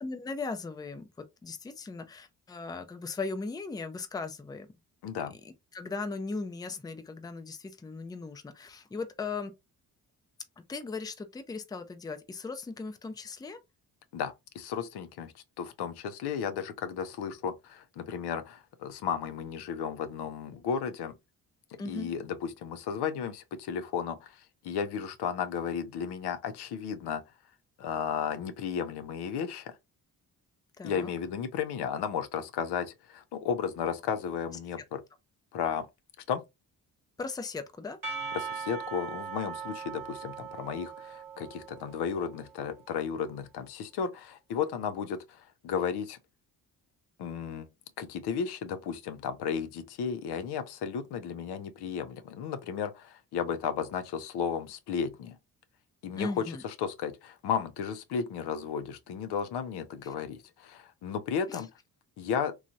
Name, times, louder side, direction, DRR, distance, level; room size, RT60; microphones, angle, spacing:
voice 1, 0.0-4.7 5.4-9.5 10.7-13.6 21.8-22.1 30.8-31.1 37.2-38.0 56.2-56.6 61.5-61.6, left 4 dB, 10° left, 0.4 m, -38 dB
voice 2, 5.0-5.3 14.1-21.1 21.9-27.2 27.8-29.8 30.8-35.0 35.5-35.9 36.3-36.4 38.3-46.2 47.2-47.7 48.0-55.4 56.0-61.7 62.2-62.5, left 7 dB, 85° left, 0.6 m, -34 dB
Percussion / Church bell, 38.0-42.6, right 6 dB, 60° right, 0.9 m, -40 dB
3.1 x 2.3 x 2.6 m
cardioid pair, 85°, 39 cm